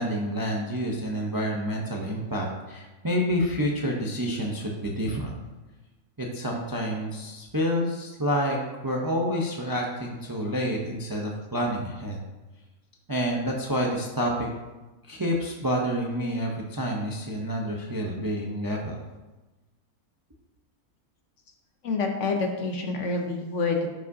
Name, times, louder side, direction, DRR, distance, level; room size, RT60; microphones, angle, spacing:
voice 1, 0.0-5.3 6.2-12.2 13.1-14.5 15.1-19.1, equal, 25° right, -1 dB, 0.5 m, -28 dB
voice 2, 21.8-23.9, left 3 dB, 60° left, 3 dB, 1.1 m, -27 dB
11.0 x 5.0 x 2.7 m, 1.1 s
omnidirectional pair, 1.5 m